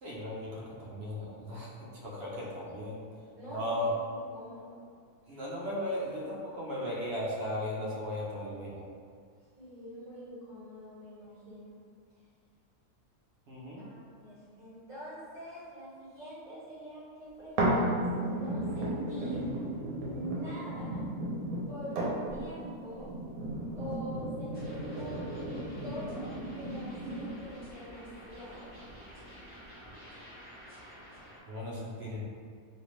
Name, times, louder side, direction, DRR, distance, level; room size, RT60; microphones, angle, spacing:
voice 1, 0.0-3.0 3.5-3.9 5.3-8.8 13.5-13.8 31.5-32.2, left 1 dB, 55° right, -5 dB, 0.8 m, -36 dB
voice 2, 3.4-4.8 9.5-11.8 13.8-18.0 18.3-19.5 20.1-21.1 21.7-23.1 23.7-25.3 25.8-28.8, equal, 35° right, -12 dB, 1.7 m, -45 dB
sound 1, 17.6-27.6 28.1-28.2, right 1 dB, 75° right, 1.2 m, -34 dB
sound 2, 24.5-31.4, equal, 10° left, 0.8 m, -50 dB
3.3 x 2.4 x 3.1 m, 2.2 s
omnidirectional pair, 1.5 m